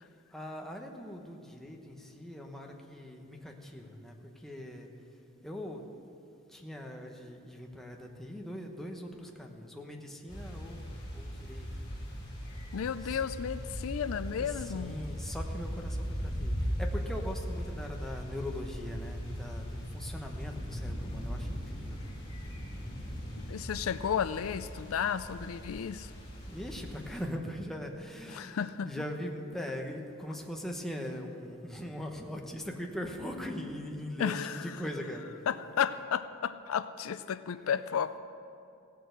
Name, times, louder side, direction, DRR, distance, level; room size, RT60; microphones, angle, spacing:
voice 1, 0.3-4.9 5.4-5.8 6.5-10.9 11.1-11.8 13.0-13.2 14.4-22.2 26.5-28.6 28.8-35.3, left 1 dB, ahead, 1 dB, 1.0 m, -41 dB
sound 1, 10.3-27.3, equal, 20° left, 2.7 m, -39 dB
voice 2, 12.7-15.0 23.5-26.1 28.3-28.9 34.2-34.6 35.5-38.2, left 8 dB, 70° left, 13 dB, 0.4 m, -33 dB
16.5 x 6.7 x 8.0 m, 2.6 s
head